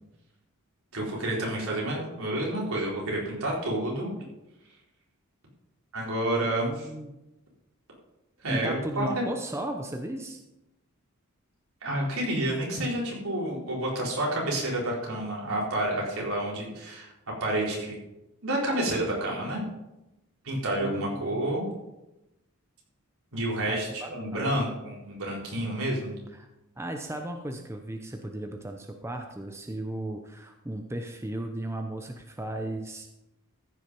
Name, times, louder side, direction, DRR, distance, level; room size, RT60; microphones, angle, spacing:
voice 1, 0.9-4.1 5.9-6.9 8.4-9.2 11.8-17.1 17.4-17.9 18.4-19.6 20.4-21.7 23.3-26.2, right 1 dB, 75° right, -3 dB, 4.0 m, -29 dB
voice 2, 6.6-7.2 8.5-10.4 20.8-21.5 23.7-24.7 26.4-26.5 26.8-33.2, right 1 dB, 10° right, 4 dB, 0.7 m, -36 dB
14.0 x 6.3 x 5.4 m, 0.94 s
head